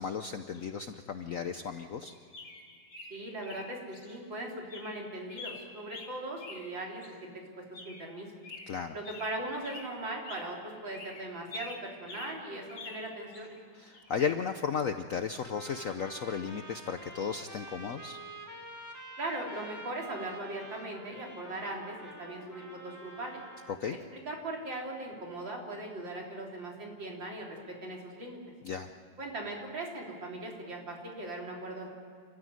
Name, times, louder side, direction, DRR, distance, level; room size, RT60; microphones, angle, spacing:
voice 1, 0.0-2.1 8.7-8.9 13.7-18.2 23.7-24.0 28.6-28.9, left 6 dB, 60° left, 8 dB, 0.9 m, -34 dB
sound 1, 0.5-0.6 1.6-1.9 2.1-4.1 4.4-4.5 4.7-7.1 7.7-8.2 8.4-10.6 10.9-13.6 13.9-14.2, left 3 dB, 85° left, 3.5 m, -47 dB
voice 2, 3.1-8.3 8.9-13.6 19.2-23.4 24.1-28.4 29.2-31.9, right 2 dB, 70° right, -1 dB, 4.3 m, -39 dB
sound 2, 15.4-23.8, right 1 dB, 10° right, 2.0 m, -48 dB
29.5 x 13.5 x 9.6 m, 2.3 s
omnidirectional pair, 2.2 m